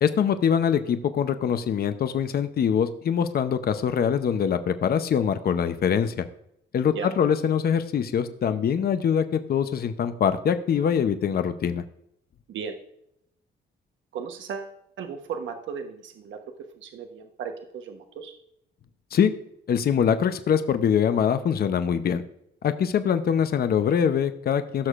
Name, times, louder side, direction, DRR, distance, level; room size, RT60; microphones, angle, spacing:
voice 1, 0.0-6.2 6.7-11.8 19.1-19.3 19.7-22.2 22.6-24.9, left 8 dB, 50° left, 10 dB, 0.7 m, -23 dB
voice 2, 14.1-16.4 16.8-18.3, right 6 dB, 70° right, 5 dB, 1.1 m, -36 dB
15.5 x 6.4 x 2.5 m, 0.75 s
cardioid pair, 90°, 20 cm